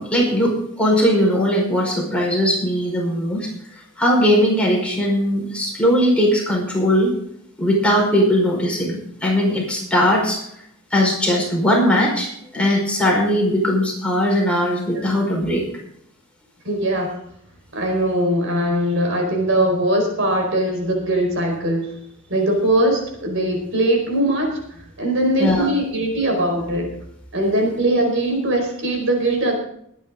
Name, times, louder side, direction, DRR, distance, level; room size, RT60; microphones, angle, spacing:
voice 1, 0.0-7.1 7.6-10.4 10.9-15.7 25.4-25.7, equal, 5° left, -2 dB, 4.9 m, -19 dB
voice 2, 16.6-17.1 17.7-21.9 22.3-27.0 27.3-29.5, right 1 dB, 60° right, 2 dB, 4.8 m, -21 dB
22.0 x 10.0 x 3.8 m, 0.71 s
head